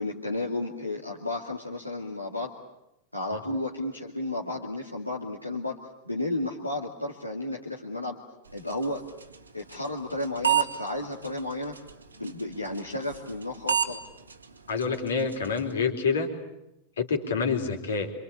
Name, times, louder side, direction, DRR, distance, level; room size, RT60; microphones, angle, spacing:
voice 1, 0.0-2.5 3.1-5.8 6.0-8.2 8.5-9.0 9.5-11.7 12.2-14.0, left 2 dB, 85° left, -2 dB, 2.4 m, -32 dB
sound 1, 8.4-15.7, right 8 dB, 80° right, 2.0 m, -34 dB
voice 2, 14.7-16.3 17.0-18.1, left 5 dB, 65° left, 4 dB, 3.7 m, -27 dB
27.0 x 26.0 x 8.6 m, 0.87 s
figure-of-eight pair, 90°, 0 cm